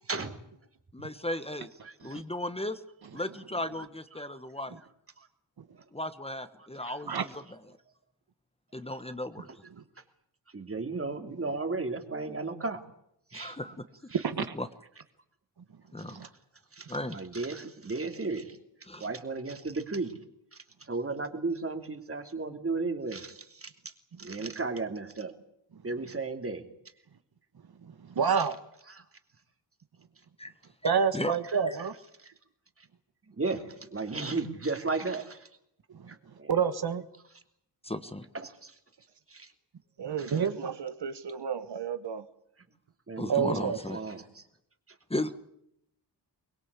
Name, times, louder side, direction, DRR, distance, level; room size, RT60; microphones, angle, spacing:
voice 1, 0.9-1.7 2.0-2.8 3.1-4.8 5.9-7.6 8.7-9.5 13.3-13.8 14.4-14.7 15.9-16.2 16.9-17.2 18.8-19.0 30.4-30.5 30.8-31.3 31.7-31.8 37.8-38.3 43.2-44.0 45.1-45.4, left 1 dB, 15° left, 1.4 m, -36 dB
voice 2, 10.5-12.8 13.3-13.5 16.8-16.9 17.1-18.5 19.0-20.1 20.9-23.3 23.6-23.7 24.2-25.3 25.8-26.6 28.9-29.0 33.4-35.4 36.4-36.5 38.4-38.5 39.3-39.5 43.1-44.2, right 3 dB, 30° right, 2.9 m, -34 dB
voice 3, 14.2-14.5 16.1-16.3 28.1-28.6 30.8-31.9 36.5-37.0 40.3-40.7 43.3-43.8, right 6 dB, 60° right, 1.5 m, -27 dB
voice 4, 40.0-42.2, right 7 dB, 75° right, 1.5 m, -36 dB
24.0 x 21.5 x 8.4 m
wide cardioid pair, 115°, 42 cm